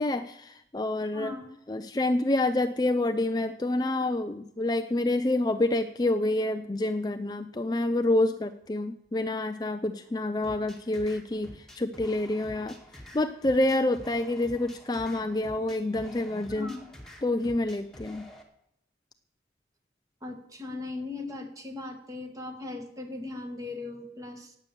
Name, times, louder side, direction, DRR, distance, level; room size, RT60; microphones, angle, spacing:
voice 1, 0.0-1.3 1.7-12.8 13.1-16.7 17.2-18.3, left 2 dB, 20° left, 9 dB, 0.4 m, -28 dB
voice 2, 1.1-1.5 16.5-16.9 20.2-24.6, left 3 dB, 20° right, 5 dB, 1.8 m, -38 dB
sound 1, 10.4-18.4, left 1 dB, 5° left, 1.8 m, -48 dB
18.0 x 8.2 x 7.0 m, 0.76 s
head